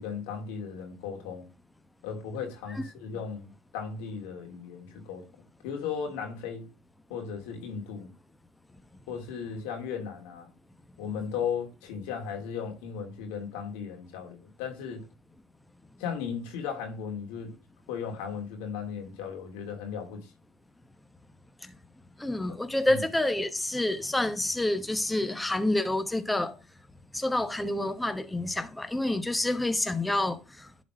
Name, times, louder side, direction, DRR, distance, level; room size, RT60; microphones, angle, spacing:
voice 1, 0.0-1.5 2.0-5.3 5.6-6.7 7.1-8.1 9.1-10.5 11.0-15.0 16.0-17.5 17.9-20.3 22.9-23.0, left 6 dB, 90° left, 2.8 m, -36 dB
voice 2, 22.2-26.5 27.1-30.7, left 1 dB, 10° left, 1.0 m, -28 dB
11.0 x 4.2 x 4.8 m
supercardioid pair, 90°, 0 cm